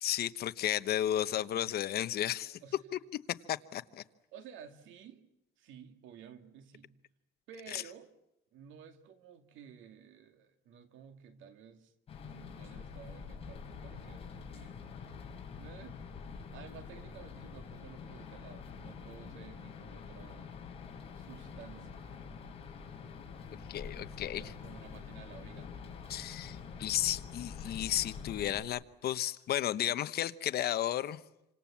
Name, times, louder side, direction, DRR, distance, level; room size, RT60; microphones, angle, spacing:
voice 1, 0.0-2.6 3.5-4.0 7.7-7.8 23.7-24.4 26.1-31.2, left 11 dB, 50° left, 1.0 m, -33 dB
voice 2, 4.3-5.2 5.6-7.0 7.5-8.1 8.5-11.9 12.2-14.8 15.6-16.0 16.5-20.5 21.1-22.1 24.2-26.5, right 7 dB, 75° right, 2.4 m, -53 dB
sound 1, 12.1-28.6, left 5 dB, 30° left, 5.1 m, -46 dB
28.0 x 26.0 x 7.3 m
cardioid pair, 150°, 20 cm